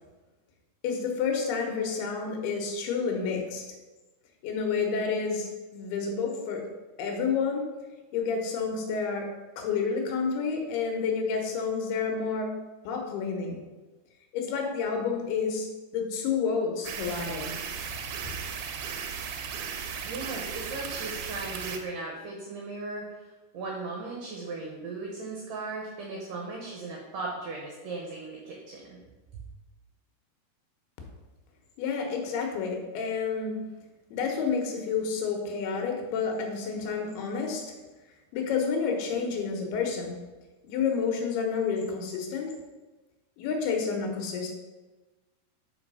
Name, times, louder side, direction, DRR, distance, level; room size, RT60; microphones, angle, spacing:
voice 1, 0.8-3.6 4.4-6.6 7.0-7.7 8.1-9.3 9.6-12.5 12.8-13.6 14.3-15.7 15.9-17.5 31.8-33.6 34.1-37.6 38.3-40.1 40.6-42.5 43.4-44.5, left 5 dB, 80° left, 2 dB, 3.0 m, -29 dB
sound 1, 16.8-21.8, right 7 dB, 90° right, 2.7 m, -36 dB
voice 2, 20.0-23.3 23.5-29.0, right 3 dB, 70° right, -2 dB, 2.2 m, -37 dB
5.8 x 5.4 x 5.4 m, 1.2 s
omnidirectional pair, 4.6 m